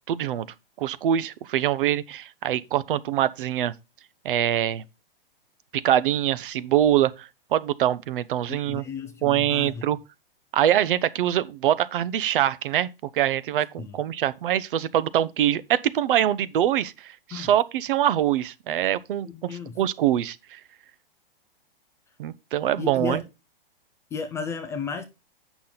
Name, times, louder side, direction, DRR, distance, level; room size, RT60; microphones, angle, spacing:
voice 1, 0.1-0.5 0.8-3.7 4.2-4.8 5.7-8.8 9.2-10.0 10.5-12.9 13.1-20.6 22.2-23.2, right 11 dB, 60° right, 0.7 m, -24 dB
voice 2, 8.5-9.8 13.8-14.0 17.3-17.5 19.2-19.8 22.8-23.3 24.1-25.0, left 5 dB, 10° left, 0.4 m, -34 dB
8.4 x 6.0 x 3.9 m
hypercardioid pair, 145°, 30 cm